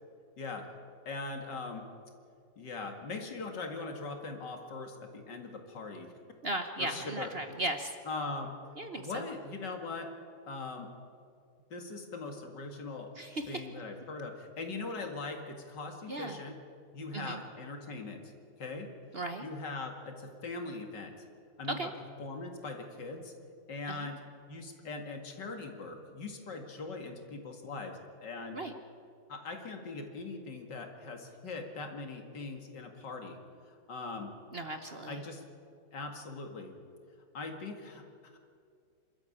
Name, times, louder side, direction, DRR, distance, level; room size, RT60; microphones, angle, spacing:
voice 1, 0.4-0.7 1.1-1.9 2.6-6.1 6.8-7.3 8.0-8.5 9.0-10.1 10.5-10.9 11.7-13.1 13.5-16.6 16.9-18.2 18.6-18.9 19.4-21.1 21.6-21.9 22.2-23.3 23.7-24.2 24.5-28.6 29.3-33.4 33.7-34.3 35.1-35.4 35.9-36.7 37.3-38.0 38.3-38.4, left 3 dB, 70° left, 4 dB, 2.7 m, -41 dB
voice 2, 6.4-7.9 8.8-9.2 13.2-13.4 16.1-16.4 17.1-17.4 19.1-19.5 21.8-21.9 23.9-24.1 28.5-28.7 34.5-35.1, right 1 dB, 40° right, 6 dB, 1.1 m, -36 dB
27.0 x 13.0 x 8.7 m, 2.3 s
omnidirectional pair, 1.9 m